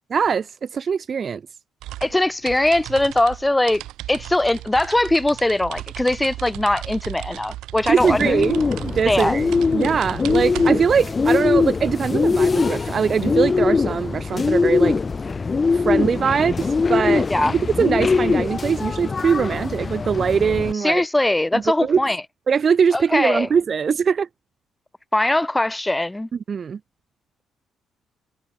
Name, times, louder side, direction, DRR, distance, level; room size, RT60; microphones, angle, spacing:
voice 1, 0.1-0.5 0.7-1.4 7.9-15.0 15.7-21.0 21.5-22.0 22.5-24.3 26.5-26.8, right 6 dB, 45° right, 2.7 m, -21 dB
sound 1, 1.8-11.0, right 15 dB, 90° right, 3.7 m, -36 dB
voice 2, 2.0-3.8 4.1-8.3 9.1-9.4 17.3-17.5 20.8-22.2 22.9-23.5 25.1-26.3, left 1 dB, 10° left, 4.2 m, -21 dB
Bird, 8.0-20.7, left 4 dB, 30° left, 1.5 m, -22 dB
cardioid pair, 90°, 0 cm